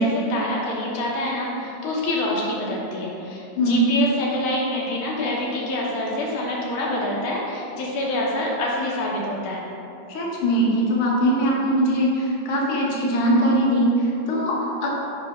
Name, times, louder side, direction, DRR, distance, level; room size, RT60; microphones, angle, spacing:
voice 1, 0.0-9.6, left 1 dB, 80° left, -4 dB, 2.4 m, -26 dB
voice 2, 10.1-14.9, right 1 dB, 60° left, -4 dB, 1.6 m, -21 dB
6.5 x 3.4 x 6.0 m, 2.8 s
omnidirectional pair, 3.4 m